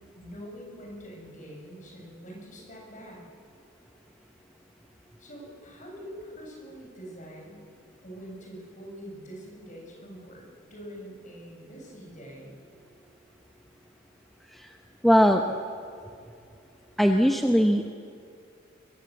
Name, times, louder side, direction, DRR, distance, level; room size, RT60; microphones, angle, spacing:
voice 1, 0.2-3.2 5.2-7.7 8.0-10.4 10.7-12.6, equal, 40° left, -1 dB, 7.4 m, -44 dB
voice 2, 15.0-15.5 17.0-17.9, equal, ahead, 3 dB, 0.9 m, -20 dB
23.5 x 22.5 x 7.9 m, 2.4 s
head